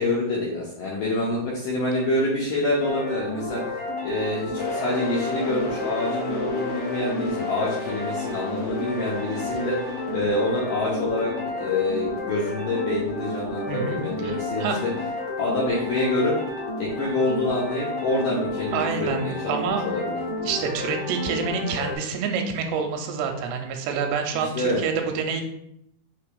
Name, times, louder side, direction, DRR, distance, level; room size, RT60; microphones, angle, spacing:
voice 1, 0.0-3.6 4.0-14.9 15.4-16.4 16.8-20.2 24.3-24.8, left 2 dB, 85° left, -5 dB, 1.9 m, -26 dB
sound 1, 2.8-22.0, left 2 dB, 45° left, 1.6 m, -31 dB
sound 2, 4.6-12.2, left 2 dB, 60° left, 2.0 m, -36 dB
voice 2, 13.7-14.8 18.7-19.8 20.4-25.4, right 6 dB, 85° right, 4 dB, 2.7 m, -27 dB
6.7 x 3.0 x 2.3 m, 0.77 s
omnidirectional pair, 4.7 m